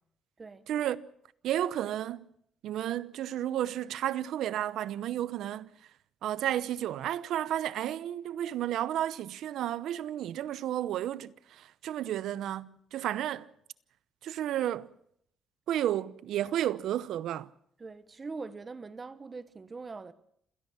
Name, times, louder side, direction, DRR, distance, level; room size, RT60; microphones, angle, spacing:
voice 1, 0.7-1.1 1.4-2.3 2.6-5.7 6.2-13.5 14.2-14.9 15.7-17.5, right 11 dB, 80° right, 0.8 m, -32 dB
voice 2, 17.8-20.1, right 4 dB, 25° right, 1.2 m, -42 dB
27.5 x 17.0 x 5.8 m
cardioid pair, 125°, 0 cm